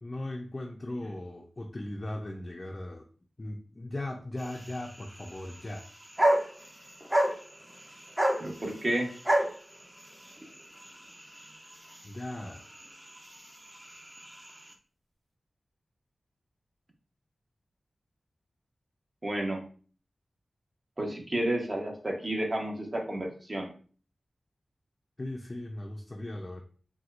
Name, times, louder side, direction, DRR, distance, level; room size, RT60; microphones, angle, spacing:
voice 1, 0.0-3.0 3.4-5.9 12.0-12.6 25.2-26.6, left 1 dB, 35° left, 1 dB, 0.4 m, -38 dB
sound 1, 4.4-14.7, right 1 dB, 15° right, 0.6 m, -33 dB
voice 2, 8.4-9.1 19.2-19.6 21.0-23.7, right 1 dB, 40° right, 0 dB, 1.0 m, -31 dB
4.1 x 2.2 x 2.4 m, 0.41 s
cardioid pair, 55°, 0 cm